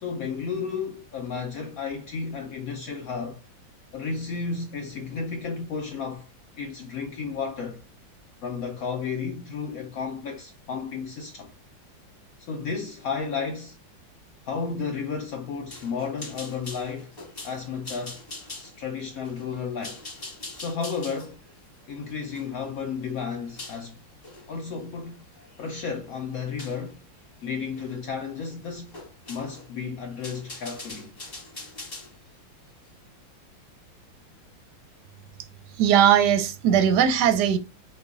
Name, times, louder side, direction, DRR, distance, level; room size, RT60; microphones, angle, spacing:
voice 1, 0.0-3.4 3.9-6.3 6.6-7.8 8.4-11.5 12.5-13.8 14.4-17.1 17.4-18.2 18.5-20.0 20.5-21.4 21.9-24.0 24.5-25.3 25.6-27.0 27.4-29.0 29.3-31.1, left 5 dB, 80° left, 0.7 m, -33 dB
sound 1, 15.7-23.8 24.2-24.5 25.0-25.7 26.6-26.8 27.8-28.0 28.2-28.3 28.9-29.7 30.0-32.1, left 2 dB, 25° left, 1.1 m, -42 dB
voice 2, 35.8-37.6, right 9 dB, 70° right, 1.0 m, -19 dB
5.2 x 2.2 x 2.4 m
omnidirectional pair, 2.1 m